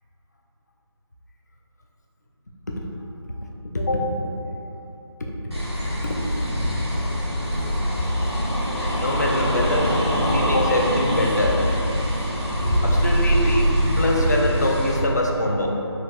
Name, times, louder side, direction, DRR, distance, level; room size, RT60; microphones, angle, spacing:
voice 1, 3.7-4.1 6.0-6.2 9.0-11.7 12.8-15.7, left 1 dB, 40° left, 0 dB, 0.3 m, -24 dB
sound 1, 5.5-15.0, equal, 65° right, 1.1 m, -23 dB
4.2 x 2.8 x 2.6 m, 3.0 s
figure-of-eight pair, 160°, 15 cm